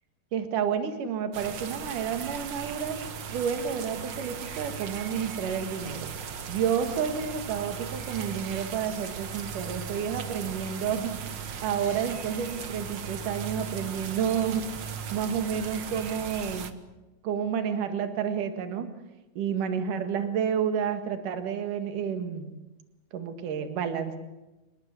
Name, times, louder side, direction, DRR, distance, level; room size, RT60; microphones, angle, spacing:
voice 1, 0.3-3.0 3.3-6.1 6.5-11.3 11.6-14.7 15.1-16.7 17.2-18.9 19.4-22.5 23.1-24.2, right 7 dB, 65° right, 7 dB, 3.4 m, -30 dB
sound 1, 1.3-16.7, right 7 dB, 90° right, 1.0 m, -38 dB
27.5 x 20.0 x 8.2 m, 1.0 s
omnidirectional pair, 4.1 m